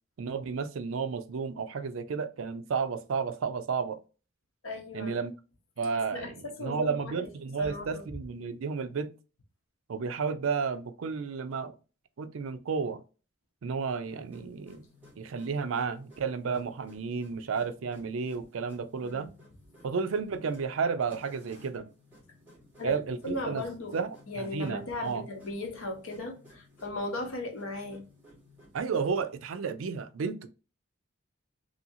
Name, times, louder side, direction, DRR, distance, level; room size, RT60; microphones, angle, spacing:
voice 1, 0.2-4.0 4.9-5.3 5.8-9.1 9.9-11.7 12.2-13.0 13.6-14.8 15.2-19.3 19.8-21.9 22.8-23.6 23.9-25.3 28.7-30.5, right 5 dB, 75° right, 0.4 m, -32 dB
voice 2, 4.6-5.1 5.9-7.2 7.6-8.1 19.0-19.3 22.8-24.0 24.3-28.0, left 2 dB, 75° left, 0.9 m, -37 dB
sound 1, 13.9-28.8, left 1 dB, 10° right, 1.3 m, -57 dB
2.7 x 2.7 x 2.6 m
head